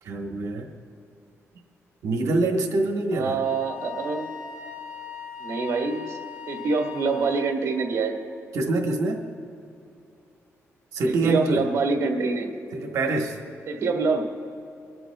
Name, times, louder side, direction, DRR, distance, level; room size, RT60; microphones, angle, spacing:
voice 1, 0.0-0.7 2.0-3.4 8.5-9.2 10.9-11.6 12.7-13.4, right 2 dB, 85° right, 3 dB, 1.2 m, -25 dB
voice 2, 3.1-4.3 5.4-6.2 6.5-8.1 11.0-12.5 13.7-14.3, right 4 dB, 70° right, 2 dB, 1.5 m, -25 dB
Wind instrument woodwind instrument, 3.4-7.6, left 7 dB, 10° right, 2.8 m, -39 dB
23.0 x 13.0 x 2.3 m, 2.7 s
wide cardioid pair, 135°, 5 cm